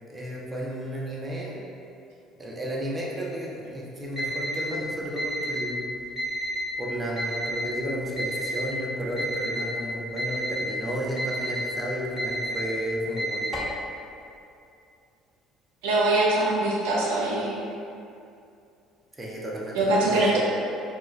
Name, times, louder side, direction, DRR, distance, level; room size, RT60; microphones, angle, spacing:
voice 1, 0.1-1.6 2.4-5.9 6.8-13.6 19.2-20.2, equal, 20° right, -4 dB, 0.6 m, -33 dB
Alarm, 4.2-4.6 5.2-5.6 6.2-6.6 7.2-7.6 8.2-8.6 9.2-9.6 10.2-10.6 11.2-11.6 12.2-12.6 13.2-13.7, right 1 dB, 5° left, 1.0 m, -30 dB
voice 2, 15.8-17.6 19.7-20.4, right 2 dB, 80° right, -5 dB, 0.4 m, -23 dB
2.3 x 2.3 x 3.1 m, 2.5 s
hypercardioid pair, 65°, 0 cm